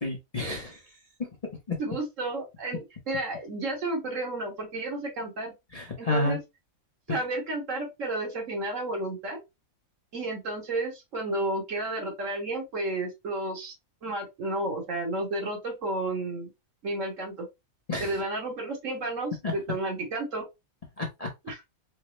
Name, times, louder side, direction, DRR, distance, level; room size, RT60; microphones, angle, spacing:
voice 1, 0.0-0.8 1.7-1.8 5.7-6.4 7.1-7.2 17.9-18.2 19.4-19.5 21.0-21.3, left 2 dB, 35° left, 0.7 m, -30 dB
voice 2, 1.8-5.5 6.0-6.4 7.1-9.4 10.1-13.7 14.0-16.5 16.8-17.5 18.0-20.5 21.5-21.6, right 2 dB, 65° right, 1.7 m, -32 dB
4.6 x 2.1 x 3.1 m
omnidirectional pair, 1.5 m